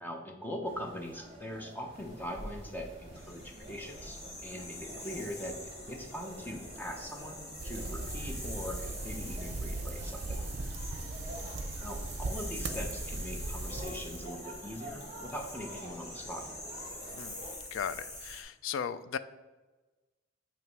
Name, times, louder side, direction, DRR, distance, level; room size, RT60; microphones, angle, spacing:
voice 1, 0.0-10.4 11.8-16.4, equal, 10° left, 2 dB, 0.6 m, -42 dB
sound 1, 0.6-17.5, right 1 dB, 30° right, 1.0 m, -48 dB
sound 2, 1.9-18.4, left 2 dB, 40° left, 1.6 m, -46 dB
sound 3, 7.6-14.3, right 2 dB, 60° right, 0.6 m, -38 dB
voice 2, 17.7-19.2, left 7 dB, 85° left, 14 dB, 0.3 m, -36 dB
7.2 x 3.0 x 4.6 m, 1.2 s
head